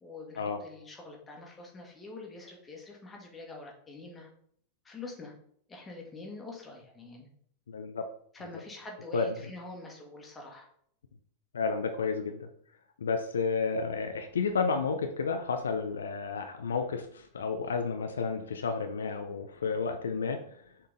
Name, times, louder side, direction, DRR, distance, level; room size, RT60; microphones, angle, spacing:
voice 1, 0.0-4.3 4.8-5.3 5.7-7.3 8.3-10.7, left 2 dB, 15° left, 0 dB, 1.7 m, -45 dB
voice 2, 7.7-8.0 9.1-9.3 11.5-12.5 13.0-20.5, left 5 dB, 70° left, 6 dB, 0.5 m, -31 dB
6.5 x 3.8 x 3.8 m, 0.64 s
figure-of-eight pair, 90°, 0 cm